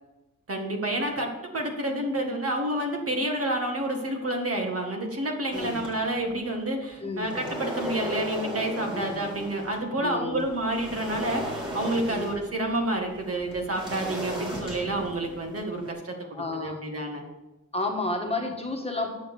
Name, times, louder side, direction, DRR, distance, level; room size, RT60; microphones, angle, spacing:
voice 1, 0.5-16.1 16.5-17.2, right 1 dB, 45° right, 2 dB, 1.8 m, -29 dB
sound 1, 5.5-6.5 6.9-9.9 10.3-15.9, equal, 15° right, 3.0 m, -36 dB
voice 2, 7.0-7.3 8.9-9.1 10.0-10.4 12.1-12.4 16.3-16.8 17.7-19.2, left 2 dB, 20° left, 1 dB, 1.5 m, -31 dB
9.2 x 6.4 x 6.9 m, 1.0 s
wide cardioid pair, 125°, 32 cm